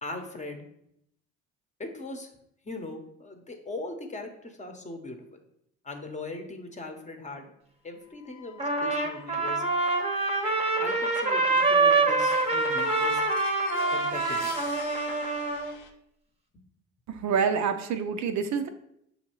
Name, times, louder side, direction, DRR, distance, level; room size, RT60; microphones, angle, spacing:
voice 1, 0.0-0.6 1.8-2.3 2.6-5.4 5.8-7.5 7.8-9.6 10.8-13.2 13.9-14.5, left 2 dB, 20° left, 4 dB, 0.8 m, -39 dB
sound 1, 8.2-15.9, left 6 dB, 85° left, 0.6 m, -44 dB
Trumpet, 8.6-15.7, right 3 dB, 20° right, 0.8 m, -25 dB
voice 2, 17.1-18.7, right 6 dB, 60° right, 7 dB, 0.5 m, -27 dB
6.4 x 2.7 x 3.0 m, 0.75 s
supercardioid pair, 70°, 32 cm